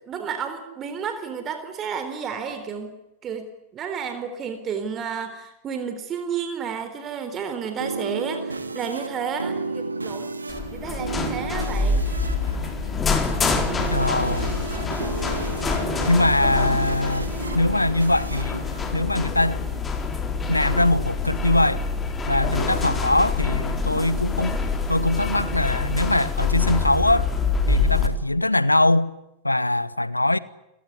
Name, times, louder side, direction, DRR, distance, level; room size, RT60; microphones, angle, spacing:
voice 1, 0.0-10.3 10.7-12.1, right 6 dB, 30° right, 3.8 m, -31 dB
sound 1, 7.3-19.8, right 3 dB, 80° right, 2.4 m, -33 dB
sound 2, 10.5-28.1, left 4 dB, 20° left, 4.3 m, -26 dB
voice 2, 13.9-14.5 16.1-18.6 18.9-19.7 20.5-21.9 22.3-24.6 24.9-27.3 27.7-29.1 29.4-30.4, left 1 dB, 85° left, 1.1 m, -22 dB
29.5 x 18.0 x 9.9 m
figure-of-eight pair, 90°, 0 cm